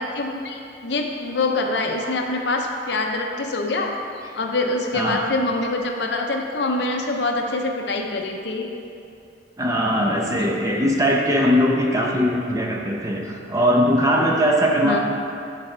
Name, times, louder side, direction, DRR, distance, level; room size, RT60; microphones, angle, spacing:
voice 1, 0.0-3.9 4.3-8.7 14.8-15.0, left 2 dB, 65° left, 2 dB, 0.7 m, -25 dB
voice 2, 4.9-5.3 9.6-15.0, equal, 15° right, -1 dB, 0.7 m, -20 dB
10.0 x 4.2 x 4.5 m, 2.5 s
head